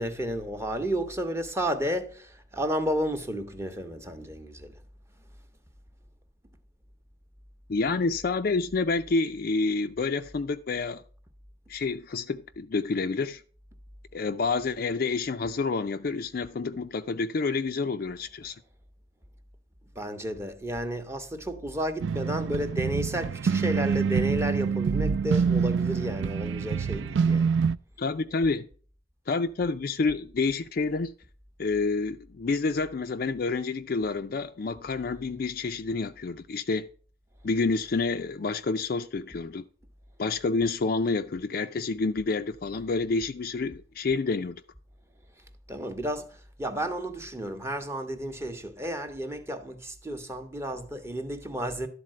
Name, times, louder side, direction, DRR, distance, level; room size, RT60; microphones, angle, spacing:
voice 1, 0.0-4.7 20.0-27.6 45.7-51.9, equal, 15° right, 0.8 m, -32 dB
voice 2, 7.7-11.0 11.7-13.4 14.1-18.5 28.0-28.7 29.3-31.1 31.6-36.9 37.4-39.6 40.2-44.6, left 4 dB, 50° left, 0.4 m, -28 dB
sound 1, 22.0-27.7, right 6 dB, 65° right, 0.3 m, -26 dB
12.0 x 4.1 x 7.5 m
head